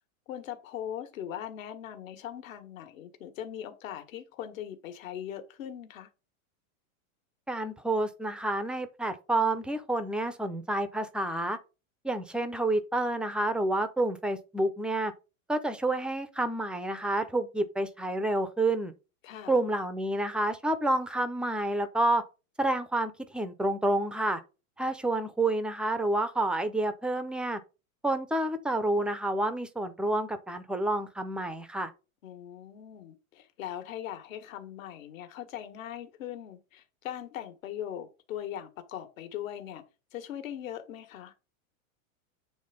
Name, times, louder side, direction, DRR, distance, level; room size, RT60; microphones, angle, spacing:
voice 1, 0.3-6.1 19.2-19.6 32.2-39.8 40.1-41.3, left 10 dB, 70° left, 1.7 m, -40 dB
voice 2, 7.5-11.6 12.0-15.1 15.5-18.9 19.5-22.2 22.6-24.4 24.8-27.6 28.0-31.9, right 2 dB, ahead, 0.4 m, -29 dB
8.7 x 3.5 x 5.1 m
supercardioid pair, 140°, 41 cm